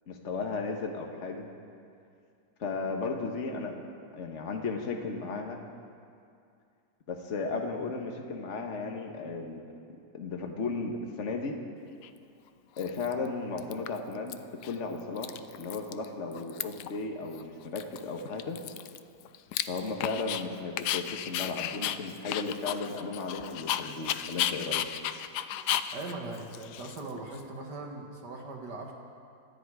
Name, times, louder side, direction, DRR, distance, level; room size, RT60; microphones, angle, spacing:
voice 1, 0.1-1.5 2.6-3.8 4.1-5.6 7.1-9.6 10.1-11.6 12.8-18.6 19.7-24.9, left 4 dB, 45° left, 3 dB, 1.6 m, -35 dB
Dog, 12.0-12.1 12.8-13.3 13.6-14.3 14.6-14.7 15.0-16.1 16.3-17.0 17.3-17.4 17.8-20.4 20.8-27.4, left 11 dB, 80° left, 1.2 m, -34 dB
voice 2, 25.9-28.9, right 2 dB, 80° right, 1 dB, 2.5 m, -40 dB
26.0 x 10.5 x 4.9 m, 2.4 s
omnidirectional pair, 1.8 m